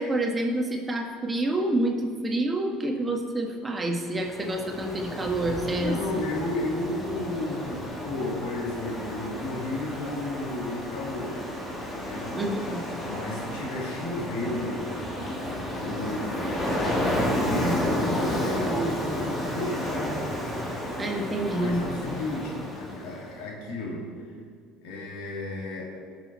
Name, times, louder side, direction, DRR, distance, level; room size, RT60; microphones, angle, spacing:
voice 1, 0.0-6.0 12.3-12.8 21.0-21.8, right 1 dB, 20° right, 2 dB, 1.5 m, -28 dB
Ocean, 4.1-23.3, left 1 dB, 20° left, 2.2 m, -32 dB
voice 2, 5.8-11.5 11.9-12.4 13.0-14.9 15.8-20.2 21.6-24.1 24.8-25.9, left 1 dB, 85° left, -2 dB, 2.6 m, -33 dB
18.0 x 6.2 x 4.2 m, 2.1 s
supercardioid pair, 105°, 0 cm